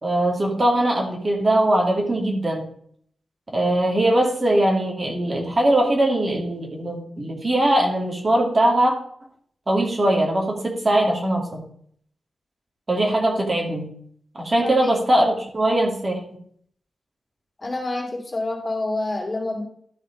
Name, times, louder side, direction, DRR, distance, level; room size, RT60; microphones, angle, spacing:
voice 1, 0.0-2.7 3.5-8.9 9.7-11.6 12.9-13.9 14.4-16.2, right 1 dB, 30° right, 0 dB, 2.3 m, -21 dB
voice 2, 14.6-14.9 17.6-19.6, left 2 dB, 30° left, 0 dB, 2.8 m, -27 dB
13.0 x 5.0 x 5.2 m, 0.63 s
wide cardioid pair, 115°, 0 cm